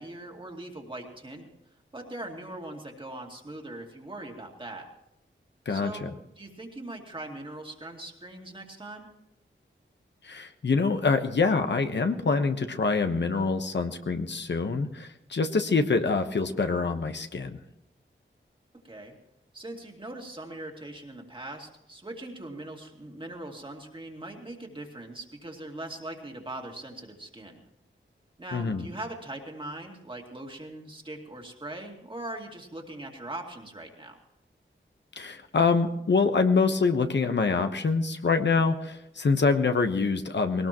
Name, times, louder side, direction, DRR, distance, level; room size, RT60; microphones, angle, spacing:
voice 1, 0.0-1.5 1.9-4.9 5.7-9.1 18.8-19.1 19.5-27.6 28.4-34.2, right 1 dB, 25° right, 1 dB, 2.4 m, -41 dB
voice 2, 5.7-6.1 10.2-17.6 28.5-28.8 35.2-40.7, left 4 dB, 60° left, 7 dB, 1.1 m, -25 dB
20.5 x 19.0 x 3.0 m, 0.86 s
wide cardioid pair, 115°, 20 cm